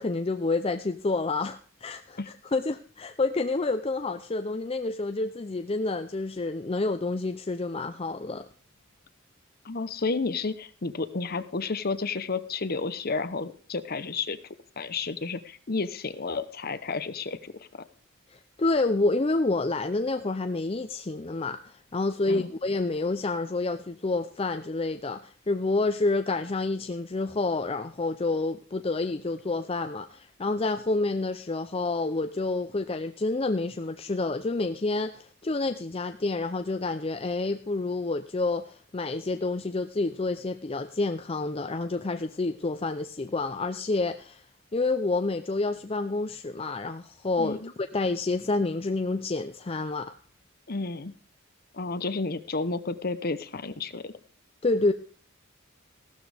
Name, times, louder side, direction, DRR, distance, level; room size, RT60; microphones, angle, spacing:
voice 1, 0.0-2.2 2.5-8.5 18.3-44.4 44.7-50.1 54.6-54.9, left 3 dB, 25° left, 8 dB, 0.5 m, -28 dB
voice 2, 9.6-14.4 14.8-17.8 22.3-22.5 47.4-47.7 50.7-51.1 51.7-54.1, left 4 dB, 45° left, 13 dB, 0.9 m, -31 dB
15.5 x 12.5 x 3.4 m, 0.43 s
head